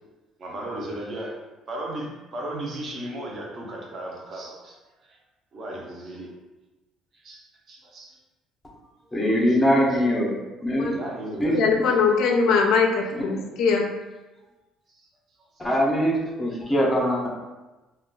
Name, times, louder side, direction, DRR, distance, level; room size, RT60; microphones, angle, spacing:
voice 1, 0.4-1.4 1.7-4.8 5.1-5.2 5.5-6.3 7.1-8.2 9.4-9.6 9.9-10.0 10.7-11.6 15.6-15.7, right 1 dB, 35° right, -1 dB, 0.6 m, -36 dB
voice 2, 9.1-10.3 10.6-10.9 11.4-11.6 13.3-13.4 15.6-17.3, equal, 10° left, -2 dB, 0.6 m, -22 dB
voice 3, 11.5-13.9, left 5 dB, 65° left, 2 dB, 0.4 m, -21 dB
2.3 x 2.2 x 3.7 m, 1.1 s
cardioid pair, 160°, 0 cm